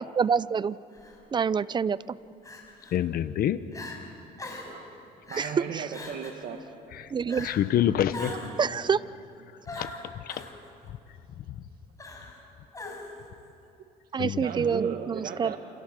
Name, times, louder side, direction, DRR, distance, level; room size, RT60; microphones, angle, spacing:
voice 1, 0.2-0.8 1.3-2.0 5.4-5.9 7.1-7.5 8.6-9.0 14.1-15.5, right 6 dB, 25° right, 18 dB, 0.5 m, -26 dB
Crying sobbing, 0.9-1.2 2.4-3.0 3.4-3.5 3.7-4.0 4.4-4.8 5.3-5.6 5.9-6.4 7.3-7.7 8.1-8.6 9.7-10.5 12.0-12.4 12.7-13.3, left 2 dB, 20° left, 5.5 m, -41 dB
voice 2, 2.9-3.6 7.4-8.3 9.7-9.9 10.3-10.4 14.2-14.4, left 11 dB, 60° left, 13 dB, 1.1 m, -26 dB
voice 3, 4.4-4.9 5.3-6.6 8.2-8.6 10.3-10.5 14.4-15.6, right 7 dB, 60° right, 3 dB, 1.9 m, -37 dB
28.5 x 27.5 x 6.7 m, 2.7 s
cardioid pair, 110°, 17 cm